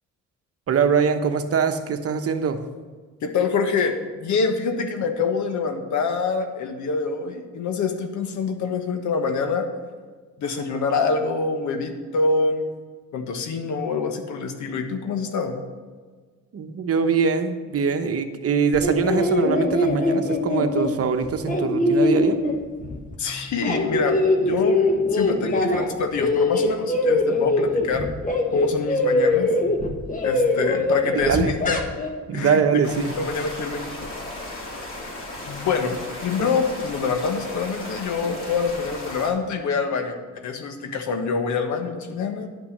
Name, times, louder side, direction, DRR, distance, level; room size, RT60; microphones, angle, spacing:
voice 1, 0.7-2.6 16.5-22.4 31.1-31.5 32.3-33.1, right 6 dB, 50° right, 8 dB, 1.0 m, -22 dB
voice 2, 3.2-9.7 10.4-12.7 13.1-15.6 23.2-24.8 25.1-28.1 28.5-29.5 30.2-31.8 32.3-34.1 35.4-42.5, left 4 dB, 75° left, 6 dB, 1.4 m, -26 dB
sound 1, 18.7-23.1 23.4-25.9 26.2-32.1, left 2 dB, 25° left, 1.5 m, -22 dB
sound 2, 32.8-39.3, left 1 dB, 45° left, 3.1 m, -35 dB
10.5 x 5.9 x 6.6 m, 1.4 s
cardioid pair, 90°, 30 cm